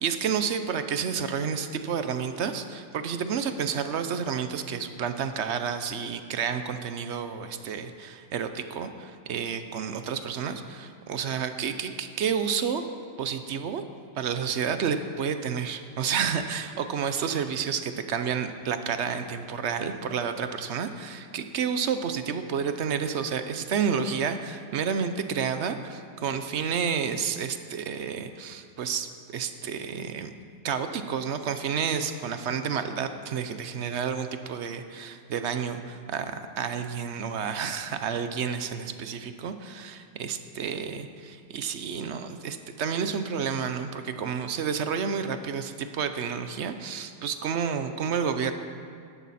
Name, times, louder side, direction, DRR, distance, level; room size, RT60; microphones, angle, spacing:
voice 1, 0.0-12.8 13.2-13.8 14.2-30.3 30.6-48.5, right 7 dB, 75° right, 9 dB, 1.0 m, -30 dB
13.5 x 11.0 x 4.2 m, 2.2 s
omnidirectional pair, 1.2 m